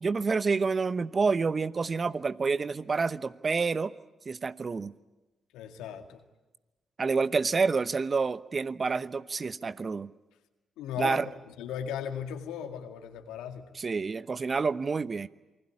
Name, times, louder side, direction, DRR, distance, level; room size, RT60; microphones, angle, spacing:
voice 1, 0.0-3.9 4.3-4.9 7.0-10.1 11.0-11.3 13.7-15.3, right 4 dB, 45° right, 15 dB, 0.9 m, -28 dB
voice 2, 5.5-6.2 10.8-13.8, left 8 dB, 80° left, 6 dB, 2.1 m, -37 dB
28.0 x 20.5 x 9.8 m, 1.1 s
hypercardioid pair, 45°, 0 cm